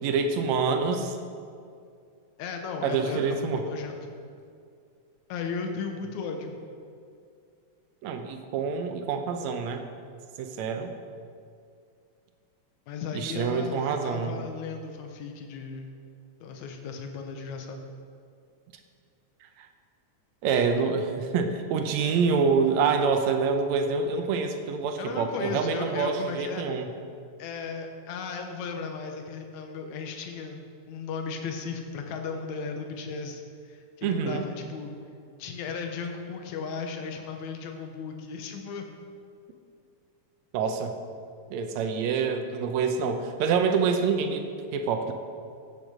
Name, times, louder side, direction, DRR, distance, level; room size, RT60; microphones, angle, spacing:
voice 1, 0.0-1.1 2.8-3.6 8.0-9.8 10.4-10.9 13.1-14.4 20.4-26.9 34.0-34.4 40.5-40.9 41.5-44.4 44.7-45.1, right 5 dB, 75° right, 6 dB, 2.1 m, -26 dB
voice 2, 2.4-4.1 5.3-6.6 12.9-16.0 16.4-17.9 25.0-26.7 27.4-35.0 35.4-38.9, left 5 dB, 75° left, 4 dB, 2.4 m, -36 dB
15.0 x 8.5 x 5.0 m, 2.3 s
omnidirectional pair, 3.4 m